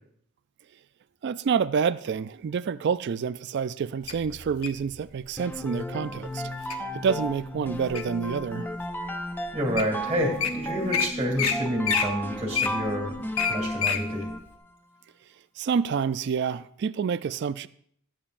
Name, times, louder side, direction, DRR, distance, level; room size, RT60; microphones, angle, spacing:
voice 1, 1.2-8.8 15.6-17.7, right 6 dB, 50° right, 0.3 m, -28 dB
Wild animals, 4.1-4.8 5.5-5.8 6.3-6.8 7.3-8.2 8.8-8.9 9.5-9.6 9.8-9.9 10.2-10.5 10.9-11.1 11.4-11.5 11.8-14.0 14.5-14.6, left 7 dB, 75° left, 1.0 m, -27 dB
sound 1, 5.4-14.6, equal, 10° left, 0.4 m, -34 dB
voice 2, 9.5-14.3, equal, 20° right, 2.3 m, -29 dB
19.5 x 8.9 x 2.5 m
head